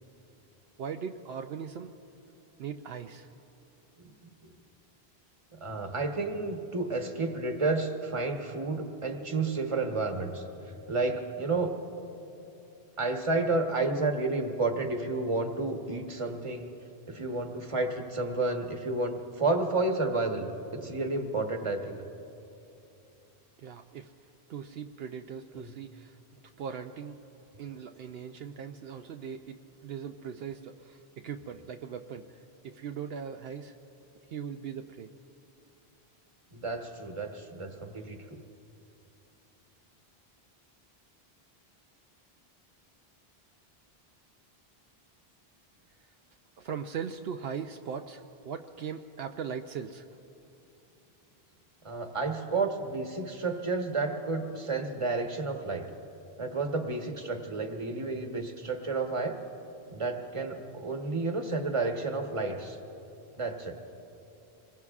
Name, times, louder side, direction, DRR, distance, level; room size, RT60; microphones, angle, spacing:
voice 1, 0.8-1.9 2.6-3.3 23.6-24.1 24.5-26.2 26.6-27.2 27.6-32.4 32.6-33.7 34.3-35.1 46.6-50.1, right 7 dB, 75° right, 5 dB, 0.8 m, -39 dB
voice 2, 5.5-10.4 10.9-11.8 13.0-16.7 17.1-20.5 20.8-22.0 25.5-25.7 36.5-38.4 51.8-55.8 56.4-59.4 59.9-62.8 63.4-63.8, right 3 dB, 30° right, 3 dB, 1.2 m, -31 dB
26.0 x 22.0 x 2.4 m, 2.8 s
omnidirectional pair, 1.0 m